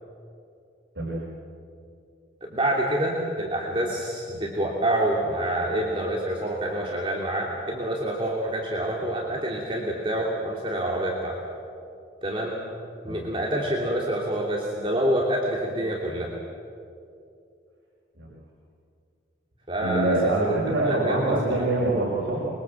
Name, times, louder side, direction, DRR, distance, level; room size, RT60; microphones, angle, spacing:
voice 1, 2.4-11.4 12.2-12.6 13.0-16.3 19.7-20.2 20.9-21.7, right 1 dB, 30° right, -3 dB, 2.8 m, -27 dB
voice 2, 19.8-22.5, right 2 dB, 80° right, -5 dB, 6.1 m, -25 dB
26.5 x 22.5 x 7.7 m, 2.5 s
head